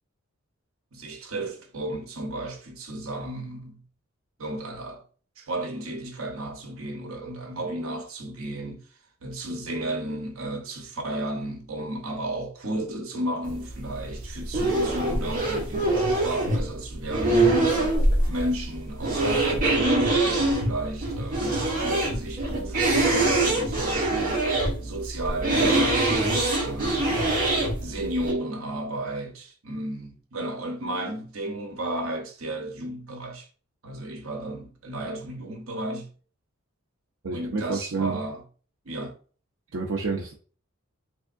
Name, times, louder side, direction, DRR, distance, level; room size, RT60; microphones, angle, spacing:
voice 1, 0.9-3.8 4.4-5.0 5.4-8.8 9.2-18.0 18.3-27.3 27.8-33.5 33.8-36.1 37.3-38.4 38.8-39.2, right 1 dB, 85° right, 0.9 m, -33 dB
sound 1, 13.4-28.3, right 2 dB, 40° right, 1.3 m, -24 dB
voice 2, 37.2-38.2 39.7-40.3, right 4 dB, 70° right, 0.5 m, -29 dB
3.5 x 3.4 x 2.5 m
head